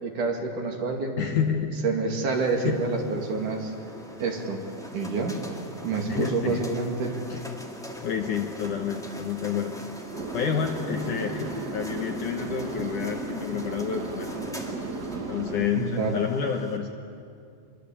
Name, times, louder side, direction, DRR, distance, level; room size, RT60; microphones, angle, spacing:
voice 1, 0.0-1.2 1.8-3.7 4.2-4.6 4.9-5.4 5.8-7.1 15.7-16.2, right 4 dB, 55° right, 2 dB, 3.5 m, -28 dB
voice 2, 1.2-1.8 2.6-2.8 6.1-6.6 7.3-7.4 8.0-9.7 10.3-14.3 15.3-16.9, left 7 dB, 65° left, 4 dB, 2.1 m, -29 dB
sound 1, 2.3-16.8, left 1 dB, ahead, 1.3 m, -42 dB
sound 2, 10.1-15.7, right 3 dB, 85° right, 0.9 m, -35 dB
26.0 x 23.5 x 8.5 m, 2.3 s
omnidirectional pair, 4.7 m